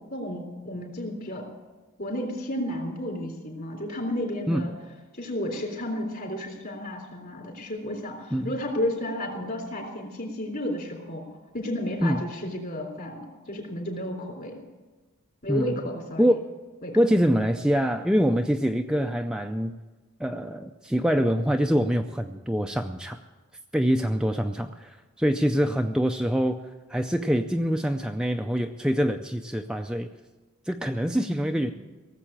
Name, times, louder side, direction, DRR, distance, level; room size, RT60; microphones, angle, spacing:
voice 1, 0.1-1.5 2.0-4.7 5.1-11.2 11.5-14.6 15.4-16.3 16.8-17.0, left 1 dB, 45° left, 2 dB, 3.6 m, -32 dB
voice 2, 15.5-15.8 16.2-16.4 17.0-19.8 20.2-23.2 23.7-26.6 26.9-30.1 30.7-31.7, equal, 5° right, 4 dB, 0.4 m, -25 dB
18.0 x 7.6 x 8.8 m, 1.3 s
head